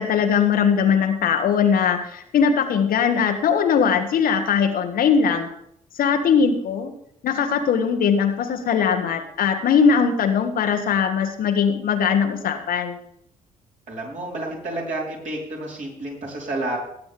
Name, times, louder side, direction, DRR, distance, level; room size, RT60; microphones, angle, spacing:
voice 1, 0.0-5.5 5.9-6.9 7.2-13.0, left 6 dB, 55° left, 6 dB, 1.3 m, -20 dB
voice 2, 13.9-16.8, right 2 dB, 45° right, -4 dB, 4.7 m, -30 dB
19.0 x 8.6 x 3.7 m, 0.72 s
figure-of-eight pair, 45°, 18 cm